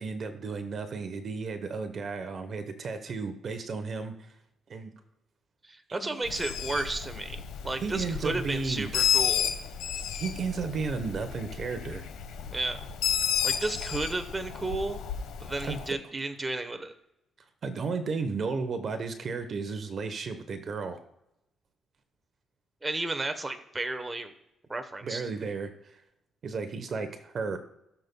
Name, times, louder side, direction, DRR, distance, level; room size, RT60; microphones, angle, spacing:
voice 1, 0.0-4.3 4.7-4.9 6.0-6.2 7.8-9.1 10.2-12.0 15.6-15.8 17.6-21.0 25.0-26.0 26.4-27.6, right 4 dB, 50° right, 9 dB, 0.9 m, -33 dB
voice 2, 5.6-9.5 12.5-12.9 13.4-15.0 15.4-16.9 22.8-24.3 24.7-25.2, right 2 dB, 20° right, 8 dB, 1.0 m, -33 dB
Bird, 6.3-15.9, left 8 dB, 90° left, 1.1 m, -32 dB
17.5 x 6.9 x 2.2 m, 0.85 s
cardioid pair, 90°, 0 cm